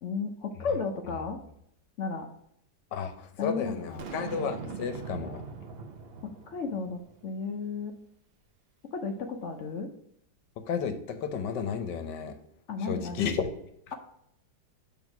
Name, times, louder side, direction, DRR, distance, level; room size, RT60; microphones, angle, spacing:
voice 1, 0.0-1.4 2.0-2.3 3.4-4.4 6.2-7.9 8.9-9.9 12.7-13.3, left 4 dB, 60° left, 5 dB, 0.8 m, -34 dB
voice 2, 2.9-5.4 10.7-12.4 12.8-13.5, left 6 dB, 80° left, 8 dB, 1.4 m, -32 dB
Boom, 4.0-7.3, right 5 dB, 65° right, 0.6 m, -41 dB
6.1 x 3.6 x 5.8 m, 0.73 s
omnidirectional pair, 1.8 m